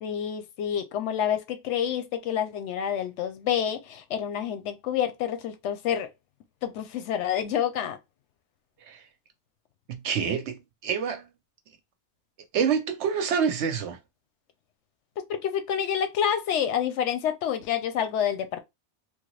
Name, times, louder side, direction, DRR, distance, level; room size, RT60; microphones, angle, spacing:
voice 1, 0.0-6.1 6.6-8.0 15.3-18.6, left 9 dB, 90° left, 0.9 m, -28 dB
voice 2, 9.9-11.3 12.5-14.0, right 7 dB, 80° right, 1.0 m, -27 dB
3.0 x 2.3 x 3.1 m
omnidirectional pair, 1.2 m